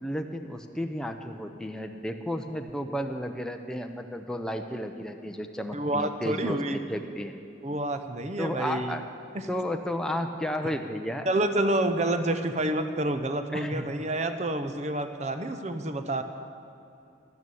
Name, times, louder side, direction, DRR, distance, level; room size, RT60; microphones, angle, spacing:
voice 1, 0.0-7.4 8.4-9.0 9.5-11.3 13.5-13.9, equal, 5° left, 4 dB, 0.5 m, -33 dB
voice 2, 5.7-6.8 7.6-9.0 9.3-9.4 11.3-16.2, right 1 dB, 35° right, 9 dB, 0.6 m, -28 dB
12.5 x 9.5 x 6.9 m, 2.7 s
head